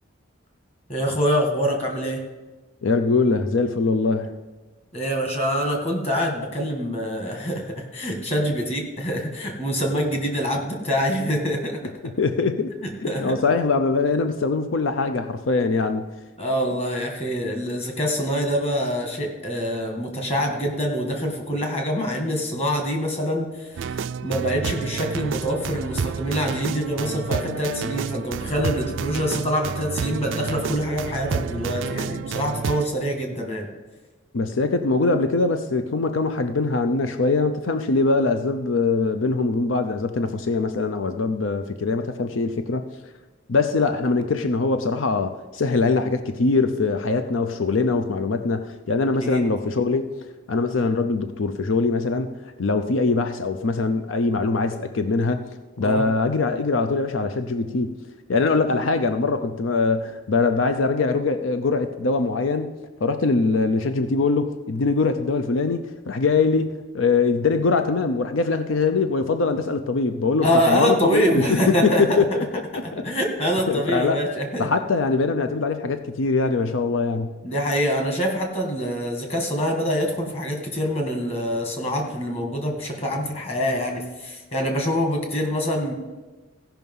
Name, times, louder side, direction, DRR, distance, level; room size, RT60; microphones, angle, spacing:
voice 1, 0.9-2.2 4.9-11.8 12.8-13.3 16.4-33.7 49.2-49.5 55.8-56.0 70.4-72.2 72.7-74.7 77.4-85.9, equal, 30° left, 2 dB, 1.8 m, -25 dB
voice 2, 2.8-4.4 12.2-12.7 13.0-16.1 34.3-42.8 43.5-50.1 50.5-52.3 52.6-55.5 55.8-57.9 58.3-62.7 63.0-72.5 72.7-73.0 73.7-74.2 74.6-77.3, left 3 dB, 85° left, 9 dB, 0.6 m, -22 dB
sound 1, 23.8-32.9, right 6 dB, 75° right, 0.4 m, -30 dB
15.5 x 5.7 x 5.4 m, 1.2 s
head